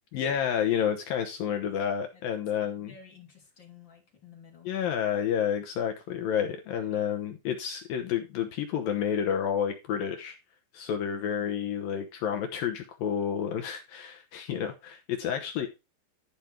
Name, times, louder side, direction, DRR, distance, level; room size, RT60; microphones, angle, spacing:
voice 1, 0.1-2.9 4.7-10.4 10.7-15.7, left 8 dB, 75° left, 2.2 m, -30 dB
voice 2, 2.6-4.8 6.7-7.0, left 7 dB, 30° left, 2.7 m, -53 dB
12.0 x 5.2 x 4.5 m
omnidirectional pair, 5.2 m